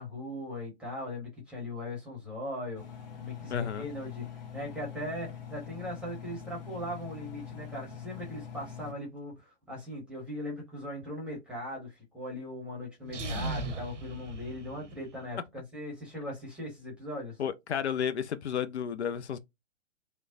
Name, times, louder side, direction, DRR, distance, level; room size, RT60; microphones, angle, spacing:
voice 1, 0.0-4.3 4.5-17.4, left 1 dB, 5° right, 0.8 m, -39 dB
Engine, 2.7-8.9, left 8 dB, 35° left, 0.8 m, -44 dB
voice 2, 3.5-3.9 17.4-19.4, left 8 dB, 65° left, 0.5 m, -32 dB
sound 1, 13.0-15.2, right 2 dB, 80° right, 0.8 m, -37 dB
3.0 x 2.1 x 2.6 m
figure-of-eight pair, 120°, 36 cm